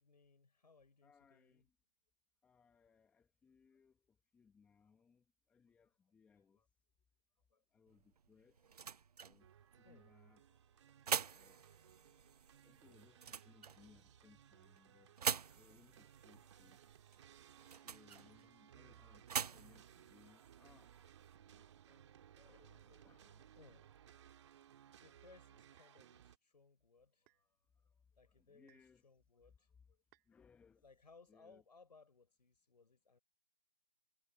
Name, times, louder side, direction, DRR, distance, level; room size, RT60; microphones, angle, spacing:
voice 1, 0.0-1.7 4.8-4.9 5.7-5.8 6.4-6.7 7.5-7.6 8.7-8.8 9.3-9.5 9.8-10.1 10.4-10.6 10.9-12.4 16.6-16.7 21.4-24.2 24.9-30.0 30.8-33.2, left 4 dB, 80° left, 4.5 m, -67 dB
voice 2, 1.0-1.7 2.4-6.6 7.7-9.5 9.8-10.4 11.3-11.6 12.5-15.2 15.5-16.8 17.7-21.0 23.0-23.2 28.4-29.0 30.3-30.8 31.3-31.6, left 6 dB, 5° left, 1.2 m, -68 dB
sound 1, 7.9-21.4, right 7 dB, 65° right, 0.8 m, -46 dB
sound 2, 9.4-26.4, right 10 dB, 45° right, 2.1 m, -63 dB
sound 3, 24.3-24.5 25.8-26.0 27.3-27.5 28.7-29.0 30.1-30.3, right 28 dB, 25° right, 3.7 m, -72 dB
figure-of-eight pair, 145°, 21 cm